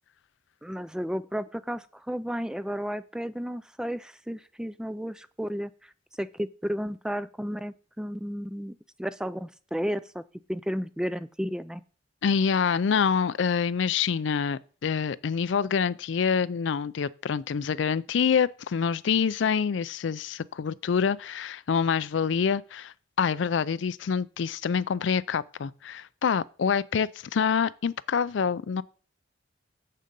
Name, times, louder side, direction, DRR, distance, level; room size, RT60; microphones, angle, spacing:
voice 1, 0.6-5.7 6.2-8.7 9.0-10.2 10.5-11.8, equal, 5° right, 0.3 m, -33 dB
voice 2, 12.2-28.8, left 6 dB, 70° left, 0.4 m, -26 dB
7.6 x 6.6 x 5.2 m
head